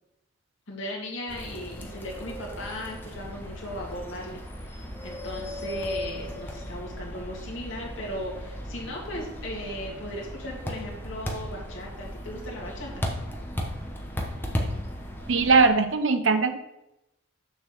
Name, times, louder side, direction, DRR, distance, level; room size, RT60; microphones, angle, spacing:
voice 1, 0.7-13.0, left 1 dB, 70° left, -2 dB, 2.3 m, -37 dB
sound 1, 1.3-15.7, equal, 10° left, 1.0 m, -36 dB
voice 2, 15.3-16.6, right 4 dB, 70° right, 9 dB, 0.7 m, -20 dB
6.8 x 4.2 x 6.5 m, 0.89 s
head